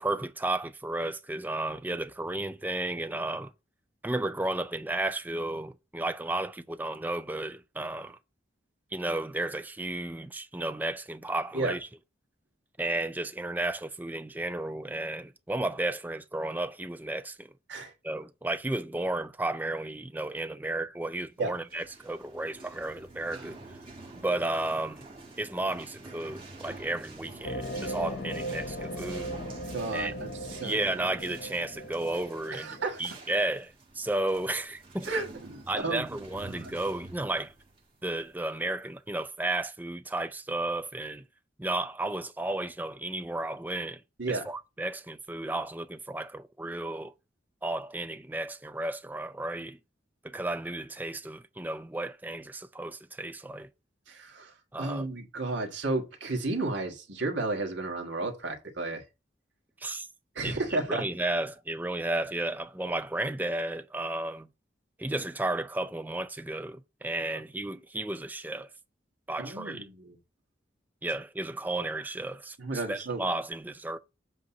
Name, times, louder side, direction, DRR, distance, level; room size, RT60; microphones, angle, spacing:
voice 1, 0.0-3.5 4.0-8.2 8.9-11.9 12.8-17.5 18.0-23.6 24.2-25.0 25.4-29.4 29.9-35.1 35.7-37.5 38.0-41.2 41.6-44.0 44.3-47.1 47.6-49.8 50.2-53.7 54.7-55.1 59.8-60.1 60.4-64.5 65.0-68.7 69.3-69.9 71.0-74.0, right 2 dB, 10° right, 0.4 m, -33 dB
sound 1, 21.5-38.9, right 2 dB, 25° right, 1.3 m, -48 dB
sound 2, 27.4-32.8, equal, 55° left, 0.6 m, -38 dB
voice 2, 29.7-30.8 32.5-33.0 35.1-36.7 44.2-44.5 54.1-54.5 54.8-59.0 60.3-61.0 69.4-70.2 72.6-73.2, right 2 dB, 75° right, 1.6 m, -33 dB
7.8 x 2.8 x 5.9 m
head